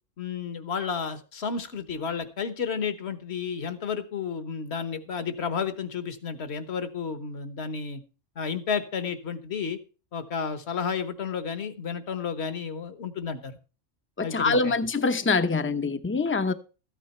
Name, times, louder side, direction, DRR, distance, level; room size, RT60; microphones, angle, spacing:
voice 1, 0.2-8.0 8.4-9.8 10.1-13.6 14.2-14.7, left 6 dB, 60° left, 1.5 m, -32 dB
voice 2, 14.2-16.5, left 4 dB, 15° left, 0.6 m, -24 dB
13.5 x 9.1 x 4.3 m
omnidirectional pair, 1.3 m